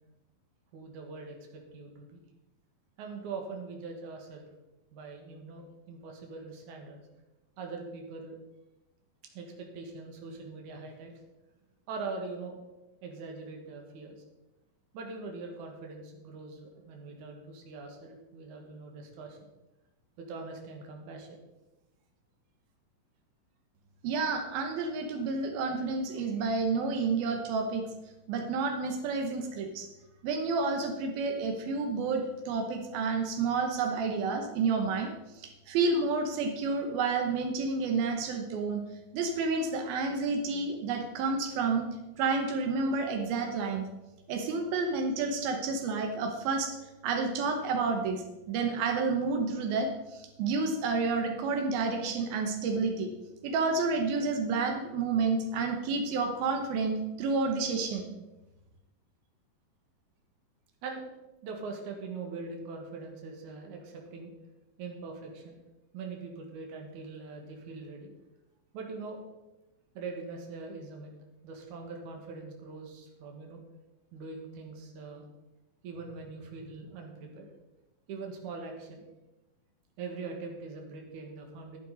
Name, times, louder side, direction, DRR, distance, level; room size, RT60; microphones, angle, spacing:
voice 1, 0.7-2.2 3.0-4.5 4.9-7.0 7.6-8.4 9.3-11.1 11.9-12.6 13.0-14.2 14.9-19.4 20.2-21.4 60.8-61.1 61.4-64.3 64.8-65.6 65.9-68.1 68.7-69.2 69.9-71.1 71.4-73.6 74.1-75.2 75.8-77.5 78.1-79.0 80.0-81.8, right 4 dB, 60° right, 2 dB, 2.9 m, -42 dB
voice 2, 24.0-27.8 28.3-29.9 30.2-35.1 35.4-38.8 39.1-41.9 42.2-43.9 44.3-46.8 47.0-53.1 53.4-58.1, right 4 dB, 85° right, 4 dB, 3.0 m, -30 dB
11.5 x 10.5 x 4.1 m, 1.0 s
omnidirectional pair, 4.1 m